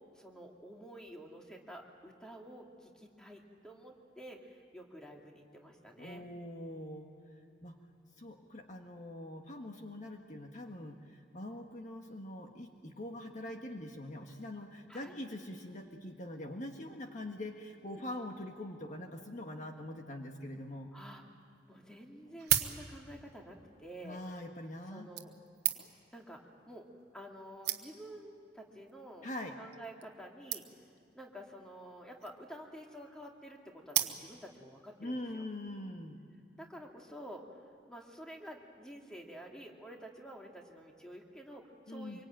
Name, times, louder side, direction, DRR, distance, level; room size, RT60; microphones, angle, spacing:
voice 1, 0.1-6.3 13.2-13.4 14.9-15.1 17.9-18.0 20.9-21.2 21.7-24.2 24.9-25.3 26.1-26.9 27.1-29.3 29.6-30.7 31.1-35.5 36.6-42.3, equal, 5° left, 0 dB, 2.5 m, -50 dB
voice 2, 6.0-7.1 7.6-7.8 8.2-20.9 24.0-25.1 29.2-29.6 35.0-36.2 41.9-42.2, left 1 dB, 40° left, 3 dB, 1.6 m, -43 dB
sound 1, 21.4-21.5 22.2-23.3 24.2-24.4 25.2-26.1 27.0-27.1 27.3-27.4 27.6-28.2 28.9-29.1 29.4-29.5 29.7-29.8 30.0-30.1 30.5-31.0 32.0-32.5 33.9-34.6 35.1-35.2, right 12 dB, 60° right, 1.3 m, -35 dB
25.5 x 24.0 x 9.0 m, 2.3 s
head